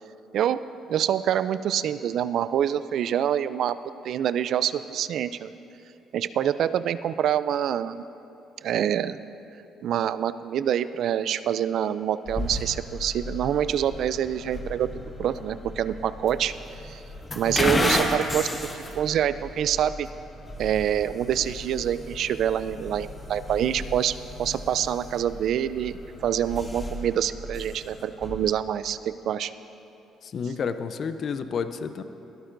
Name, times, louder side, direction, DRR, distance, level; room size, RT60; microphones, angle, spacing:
voice 1, 0.9-3.8 4.0-5.5 6.1-8.0 8.6-9.2 9.8-14.9 15.2-16.5 16.8-17.0 17.3-18.7 18.9-20.1 20.6-29.0 29.2-29.5, right 10 dB, 65° right, 14 dB, 0.4 m, -26 dB
sound 1, 12.3-28.5, left 1 dB, 30° left, 1.6 m, -34 dB
voice 2, 30.2-32.0, left 6 dB, 55° left, 11 dB, 0.6 m, -30 dB
20.0 x 13.0 x 2.6 m, 2.9 s
supercardioid pair, 65°, 0 cm